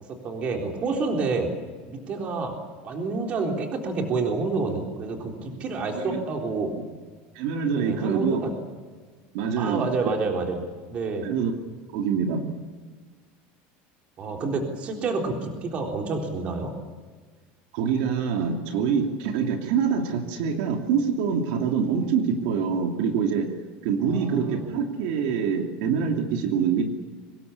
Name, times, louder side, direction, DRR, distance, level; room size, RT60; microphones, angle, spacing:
voice 1, 0.1-1.5 1.9-2.6 2.8-6.8 7.7-8.5 9.6-11.3 14.2-16.7 24.0-24.7, right 3 dB, 30° right, 2 dB, 3.8 m, -28 dB
voice 2, 7.3-8.4 9.3-9.9 11.2-11.5 11.9-12.4 17.7-23.5 23.8-26.8, right 6 dB, 65° right, 3 dB, 2.8 m, -25 dB
24.5 x 20.5 x 8.5 m, 1.5 s
cardioid pair, 180°, 5 cm